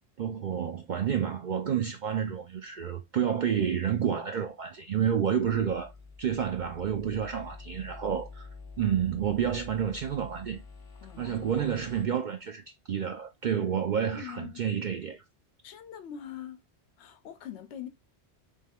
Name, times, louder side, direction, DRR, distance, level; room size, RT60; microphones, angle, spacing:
voice 1, 0.2-5.9 6.2-8.5 8.8-10.6 11.2-15.2, right 8 dB, 55° right, 0.5 m, -29 dB
sound 1, 5.4-12.1, left 4 dB, 30° left, 0.5 m, -47 dB
voice 2, 11.0-11.7 14.1-14.6 15.6-16.6 17.0-17.9, left 9 dB, 80° left, 0.9 m, -43 dB
3.5 x 3.2 x 3.5 m
omnidirectional pair, 1.1 m